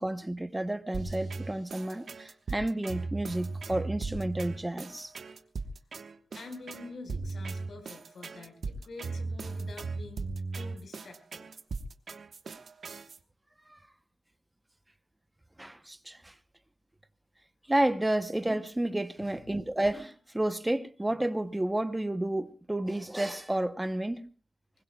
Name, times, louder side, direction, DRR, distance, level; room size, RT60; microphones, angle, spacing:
voice 1, 0.0-5.1 13.7-13.8 15.6-16.3 17.7-24.2, right 1 dB, 15° right, 0.8 m, -31 dB
sound 1, 0.9-13.2, right 3 dB, 75° right, 1.2 m, -37 dB
voice 2, 6.3-11.5 19.2-19.4, left 3 dB, 80° left, 4.6 m, -47 dB
24.5 x 21.5 x 2.3 m
wide cardioid pair, 135°, 0 cm